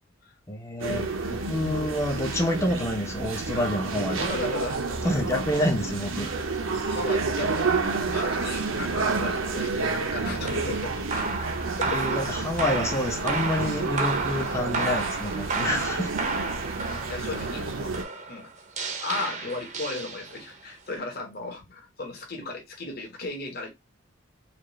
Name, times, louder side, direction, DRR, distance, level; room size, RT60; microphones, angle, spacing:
voice 1, 0.5-4.2 5.0-6.3 11.8-16.1, left 1 dB, 15° left, 0.6 m, -28 dB
sound 1, 0.8-18.0, right 4 dB, 80° right, 0.7 m, -30 dB
voice 2, 4.2-4.8 5.1-5.3 6.9-7.7 8.1-12.0 16.9-18.0 18.3-18.5 19.0-23.7, left 3 dB, 50° left, 1.4 m, -36 dB
sound 2, 4.3-16.6, left 1 dB, 80° left, 0.8 m, -47 dB
sound 3, 10.4-20.6, right 4 dB, 35° right, 0.6 m, -32 dB
4.2 x 2.5 x 3.0 m
head